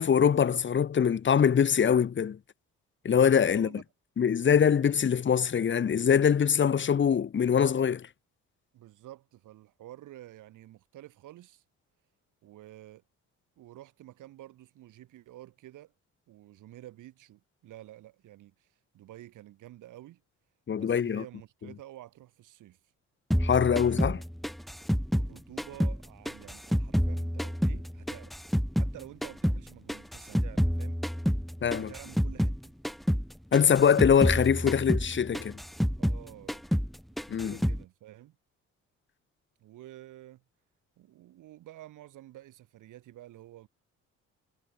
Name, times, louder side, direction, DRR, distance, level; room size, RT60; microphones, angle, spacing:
voice 1, 0.0-2.4 3.0-3.7 4.2-8.1 20.7-21.2 23.4-24.2 31.6-31.9 33.5-35.6 37.3-37.6, left 7 dB, 40° left, 1.2 m, -23 dB
voice 2, 3.5-3.8 8.7-11.6 12.4-13.0 13.6-15.9 16.3-20.2 20.7-22.8 23.6-24.0 25.1-28.3 28.7-31.0 31.7-32.7 36.0-36.7 37.4-38.4 39.6-40.4 41.0-43.7, right 14 dB, 85° right, 5.9 m, -50 dB
sound 1, 23.3-26.0 26.3-29.0 29.2-32.6 32.8-33.3 33.5-36.2 36.5-36.9 37.2-37.8, equal, ahead, 0.4 m, -28 dB
cardioid pair, 90°, 30 cm